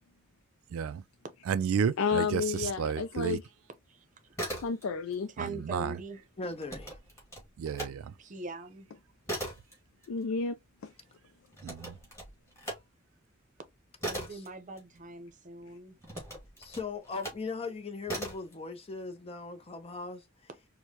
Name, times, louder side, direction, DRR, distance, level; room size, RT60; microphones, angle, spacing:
voice 1, 0.7-1.0 1.5-3.4 5.7-6.0 7.6-8.1 11.6-12.0, right 7 dB, 80° right, 0.3 m, -31 dB
voice 2, 2.0-3.4 4.6-5.3 10.1-10.5 10.8-10.9, left 5 dB, 70° left, 0.4 m, -31 dB
voice 3, 3.9-4.3 5.4-6.2 8.2-8.9 14.1-16.0, right 2 dB, 40° right, 0.7 m, -42 dB
sound 1, 4.2-5.2 5.5-7.9 8.3-15.4 16.0-17.5 18.0-18.5, right 1 dB, 15° left, 1.8 m, -40 dB
voice 4, 6.4-7.0 14.3-14.4 16.6-20.2, left 4 dB, 30° left, 0.6 m, -39 dB
4.6 x 2.1 x 2.8 m
head